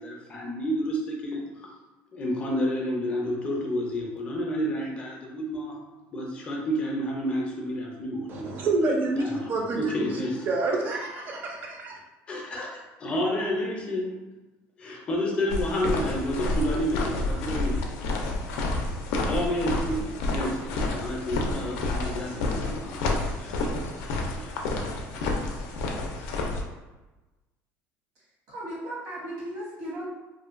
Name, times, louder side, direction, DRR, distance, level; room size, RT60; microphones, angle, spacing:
voice 1, 0.0-1.7 2.1-5.8 6.1-8.5 9.2-10.4 12.3-14.2 14.8-17.8 18.5-18.8 19.1-24.5, equal, 20° left, -1 dB, 0.4 m, -30 dB
voice 2, 8.3-10.2 10.5-12.0, right 3 dB, 35° right, 1 dB, 0.4 m, -28 dB
sound 1, 15.5-26.6, left 2 dB, 85° left, 0.4 m, -29 dB
voice 3, 28.5-30.1, right 1 dB, 80° right, -6 dB, 1.1 m, -36 dB
2.5 x 2.1 x 2.4 m, 1.1 s
cardioid pair, 175°, 5 cm